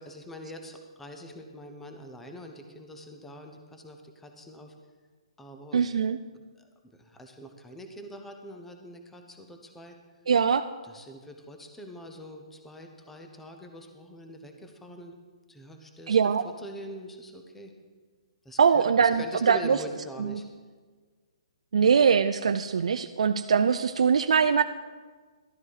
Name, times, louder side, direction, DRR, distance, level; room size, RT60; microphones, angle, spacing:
voice 1, 0.0-4.7 5.4-5.8 6.5-6.7 6.9-10.0 10.8-15.2 15.5-17.7 18.4-20.5, equal, 5° left, 4 dB, 0.9 m, -44 dB
voice 2, 5.7-6.2 10.3-10.6 16.1-16.4 18.6-19.8 20.2-20.4 21.7-24.6, right 6 dB, 80° right, 9 dB, 0.4 m, -22 dB
12.5 x 9.6 x 4.7 m, 1.5 s
hypercardioid pair, 150°, 3 cm